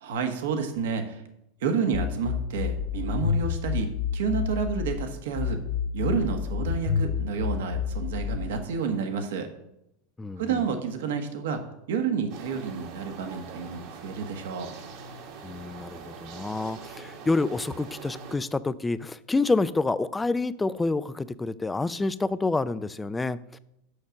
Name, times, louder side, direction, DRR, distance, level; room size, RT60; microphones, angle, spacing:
voice 1, 0.0-1.2 1.6-3.9 4.1-5.6 5.9-9.5 10.4-14.7, right 6 dB, 75° right, 6 dB, 1.3 m, -30 dB
sound 1, 1.9-5.0 5.4-8.4, left 7 dB, 50° left, 0.7 m, -29 dB
voice 2, 10.2-10.6 15.4-23.6, left 3 dB, 10° left, 16 dB, 0.4 m, -28 dB
sound 2, 12.3-18.4, right 5 dB, 60° right, 1.5 m, -43 dB
6.5 x 5.7 x 6.3 m, 0.83 s
hypercardioid pair, 105°, 0 cm